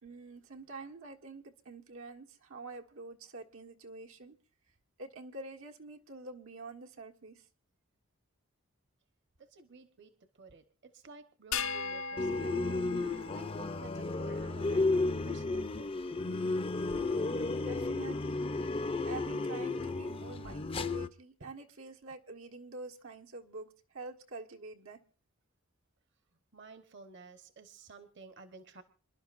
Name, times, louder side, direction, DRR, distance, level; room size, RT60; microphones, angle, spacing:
voice 1, 0.0-4.4 5.0-7.4 17.2-18.4 19.0-25.0, right 3 dB, 85° right, 2 dB, 1.5 m, -47 dB
voice 2, 9.4-15.9 16.3-16.7 21.4-21.5 26.5-28.8, right 4 dB, 60° right, 9 dB, 1.1 m, -53 dB
sound 1, 11.5-14.1, left 6 dB, 80° left, 0.8 m, -39 dB
sound 2, 12.2-21.1, left 3 dB, 25° left, 0.5 m, -33 dB
27.5 x 11.5 x 2.5 m, 0.37 s
head